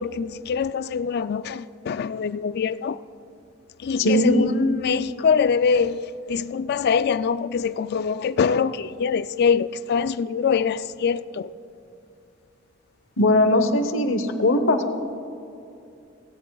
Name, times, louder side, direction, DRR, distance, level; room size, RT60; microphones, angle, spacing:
voice 1, 0.0-3.0 3.8-6.0 6.3-11.5, left 6 dB, 55° left, 0.3 m, -24 dB
voice 2, 4.0-4.5 13.2-14.9, left 1 dB, 75° left, 1.0 m, -20 dB
17.5 x 16.5 x 2.3 m
head